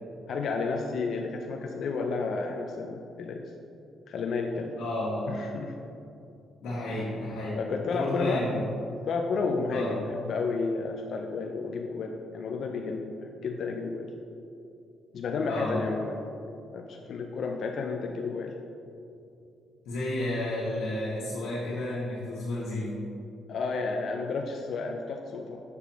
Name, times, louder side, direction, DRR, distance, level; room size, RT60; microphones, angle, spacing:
voice 1, 0.3-3.4 4.1-4.8 5.3-5.8 6.9-7.1 7.6-8.5 9.0-14.1 15.1-16.3 16.7-18.5 23.5-25.6, left 4 dB, 65° left, 2 dB, 0.5 m, -31 dB
voice 2, 4.8-5.4 6.6-7.6 7.9-8.6 9.7-9.9 15.5-15.8 19.8-23.0, left 1 dB, 85° left, -9 dB, 1.5 m, -32 dB
6.8 x 6.6 x 3.0 m, 2.6 s
cardioid pair, 90°, 0 cm